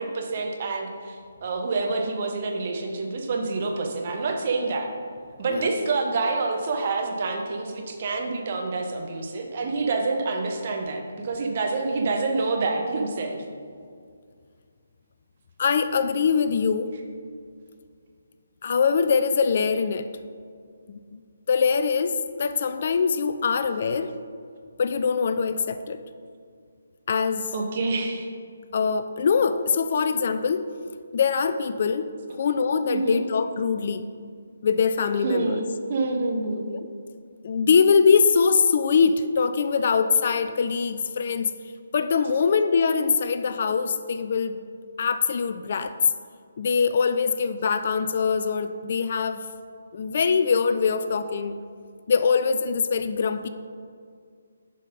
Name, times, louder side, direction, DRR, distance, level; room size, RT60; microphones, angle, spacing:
voice 1, 0.0-4.9 5.4-13.4 27.5-28.3 32.9-33.2 35.2-36.7, right 3 dB, 40° right, 2 dB, 1.0 m, -27 dB
voice 2, 15.6-16.9 18.6-20.1 20.9-21.2 21.5-24.2 24.8-26.0 27.1-27.5 28.7-30.7 31.1-34.1 34.6-35.6 36.7-36.8 37.4-41.5 41.9-44.6 45.0-46.0 46.6-49.5 49.9-51.6 52.1-53.5, left 5 dB, 45° left, 11 dB, 0.3 m, -23 dB
7.2 x 5.5 x 5.3 m, 2.2 s
figure-of-eight pair, 145°, 0 cm